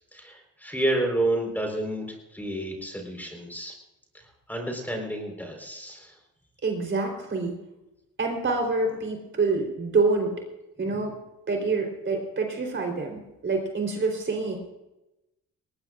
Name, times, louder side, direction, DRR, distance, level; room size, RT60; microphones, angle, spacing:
voice 1, 0.1-2.1 2.3-3.7 4.5-6.1, right 1 dB, 5° left, 2 dB, 4.3 m, -29 dB
voice 2, 6.6-7.5 8.2-10.3 10.8-11.1 11.5-14.6, right 3 dB, 40° right, 2 dB, 3.9 m, -26 dB
20.0 x 18.5 x 2.5 m, 0.95 s
cardioid pair, 90°, 30 cm